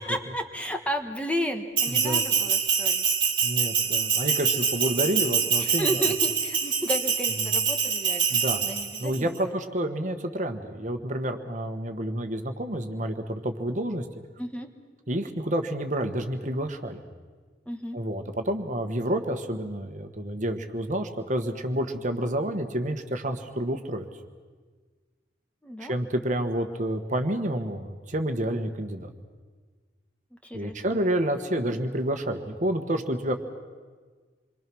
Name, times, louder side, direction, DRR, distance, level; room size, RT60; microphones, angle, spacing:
voice 1, 0.0-3.0 5.6-9.6 14.4-14.7 17.7-18.0 25.6-25.9 30.3-31.0, equal, 5° left, 5 dB, 1.4 m, -33 dB
Bell, 1.8-9.2, right 6 dB, 30° right, 2.5 m, -25 dB
voice 2, 1.9-2.2 3.4-6.0 8.3-8.6 9.0-14.0 15.1-17.0 17.9-24.1 25.8-29.1 30.5-33.3, right 1 dB, 45° right, 6 dB, 1.5 m, -29 dB
27.5 x 23.5 x 6.3 m, 1.5 s
head